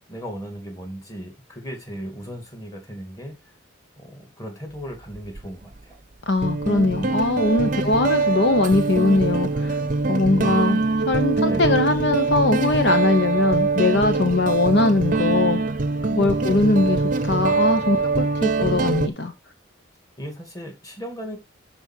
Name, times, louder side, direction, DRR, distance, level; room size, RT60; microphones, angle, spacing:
voice 1, 0.1-3.4 4.0-6.0 10.4-10.9 11.4-11.8 16.4-16.9 20.2-21.4, equal, 15° left, 2.5 m, -37 dB
Guitar, 5.1-5.4 6.4-19.1, right 3 dB, 40° right, 0.7 m, -23 dB
voice 2, 6.3-9.8 10.1-10.8 11.1-15.6 16.1-19.3, left 2 dB, 55° left, 0.9 m, -21 dB
12.5 x 4.5 x 4.5 m
head